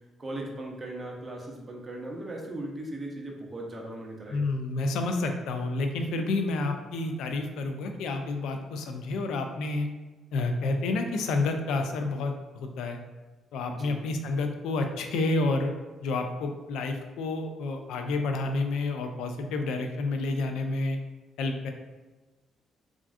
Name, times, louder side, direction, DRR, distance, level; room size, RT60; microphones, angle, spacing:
voice 1, 0.2-4.5 13.7-14.0, right 1 dB, 30° right, 0 dB, 0.6 m, -38 dB
voice 2, 4.3-9.9 10.3-13.0 13.5-15.7 16.0-21.0 21.4-21.7, left 2 dB, 90° left, 5 dB, 0.3 m, -29 dB
3.3 x 2.5 x 2.4 m, 1.2 s
cardioid pair, 90°, 0 cm